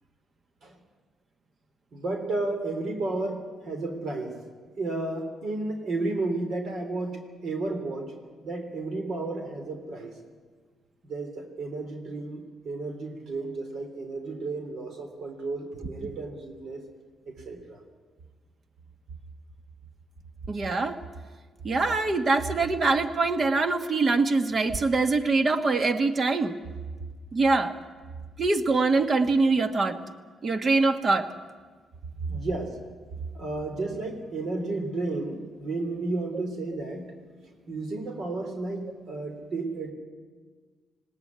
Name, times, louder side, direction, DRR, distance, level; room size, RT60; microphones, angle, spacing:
voice 1, 1.9-4.4 4.8-8.1 8.4-10.1 11.0-16.8 17.3-17.8 32.3-32.8 33.3-37.1 37.7-39.9, right 2 dB, 60° right, 5 dB, 3.4 m, -32 dB
voice 2, 20.5-21.0 21.6-26.5 27.3-27.7 28.4-30.0 30.4-31.3, right 3 dB, 40° right, 9 dB, 1.6 m, -23 dB
19.5 x 17.0 x 9.6 m, 1.5 s
cardioid pair, 90°, 0 cm